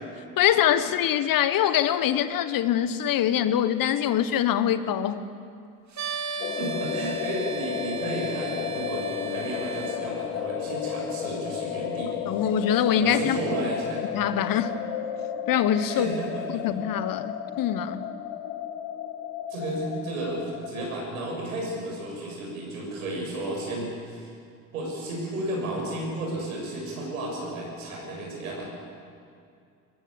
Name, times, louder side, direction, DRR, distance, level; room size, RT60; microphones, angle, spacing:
voice 1, 0.4-5.3 12.3-13.7 14.1-14.7 15.5-16.1 16.6-18.0, left 10 dB, 50° left, 12 dB, 1.4 m, -24 dB
sound 1, 5.9-10.0, right 3 dB, 40° right, 2.6 m, -35 dB
sound 2, 6.4-21.8, left 9 dB, 75° left, 1.9 m, -34 dB
voice 2, 6.6-12.4 13.0-14.0 15.9-16.6 19.5-24.3 24.7-28.7, right 1 dB, 80° right, -1 dB, 7.0 m, -33 dB
23.0 x 21.5 x 7.2 m, 2.4 s
figure-of-eight pair, 55°, 42 cm